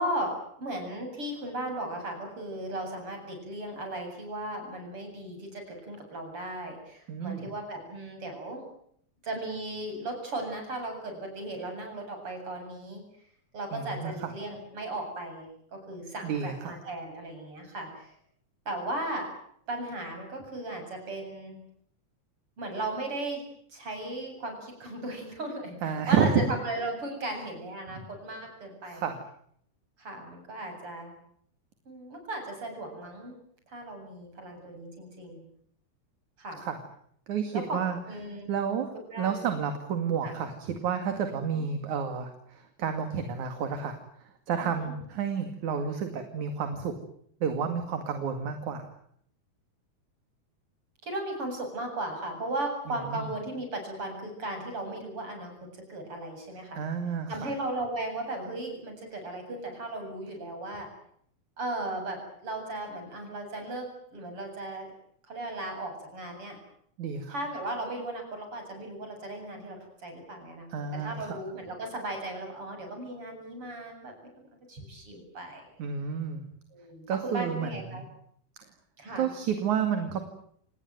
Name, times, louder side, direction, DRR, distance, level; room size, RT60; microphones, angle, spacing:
voice 1, 0.0-8.6 9.2-13.0 13.5-18.1 18.7-19.3 19.7-21.6 22.6-23.4 23.7-29.1 30.0-31.1 31.9-33.4 33.7-35.4 36.4-36.6 37.5-38.5 39.1-39.4 40.2-40.4 41.3-41.6 44.6-44.9 51.0-56.8 57.3-60.9 61.6-64.9 65.3-66.6 67.3-70.7 71.0-74.1 74.7-75.7 76.7-78.0 79.0-79.3, right 1 dB, 40° right, 4 dB, 8.9 m, -36 dB
voice 2, 7.1-7.5 13.7-14.3 16.2-16.7 25.8-26.3 27.9-28.0 28.9-29.2 36.6-36.8 37.3-38.0 38.3-38.9 39.2-47.0 47.4-48.9 52.9-53.3 56.8-57.5 67.0-67.3 70.7-71.4 75.8-76.4 77.1-78.0 79.2-80.2, right 7 dB, 65° right, 7 dB, 3.6 m, -31 dB
29.5 x 19.0 x 9.2 m, 0.68 s
omnidirectional pair, 3.6 m